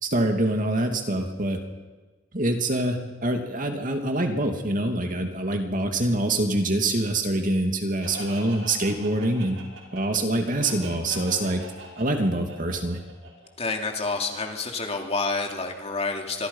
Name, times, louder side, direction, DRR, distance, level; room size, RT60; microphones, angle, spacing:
voice 1, 0.0-1.6 2.3-9.6 9.9-11.6 12.0-13.0, right 1 dB, 45° right, 4 dB, 2.5 m, -25 dB
Laughter, 8.0-13.7, right 3 dB, 85° right, 5.9 m, -42 dB
voice 2, 13.6-16.5, left 3 dB, 35° left, 3 dB, 2.7 m, -28 dB
25.5 x 24.0 x 5.6 m, 1.3 s
head